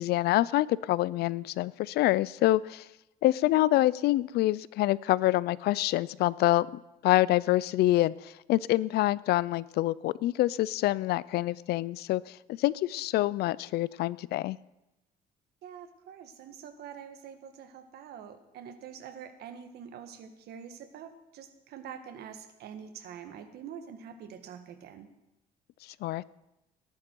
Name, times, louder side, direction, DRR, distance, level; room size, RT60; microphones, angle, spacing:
voice 1, 0.0-2.9 3.2-6.7 7.0-14.6 26.0-26.2, left 16 dB, 75° left, 21 dB, 0.5 m, -26 dB
voice 2, 15.6-25.1, right 8 dB, 70° right, 8 dB, 1.6 m, -45 dB
18.0 x 11.5 x 4.6 m, 0.93 s
cardioid pair, 110°, 17 cm